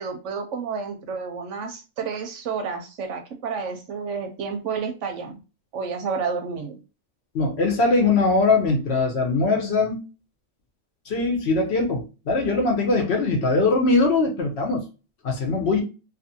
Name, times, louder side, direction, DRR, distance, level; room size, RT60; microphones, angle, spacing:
voice 1, 0.0-5.4 5.7-6.8 13.4-13.5, right 5 dB, 70° right, 0.8 m, -30 dB
voice 2, 7.3-10.0 11.1-14.8 15.2-15.8, left 3 dB, 60° left, 0.9 m, -21 dB
2.7 x 2.5 x 2.6 m
omnidirectional pair, 1.4 m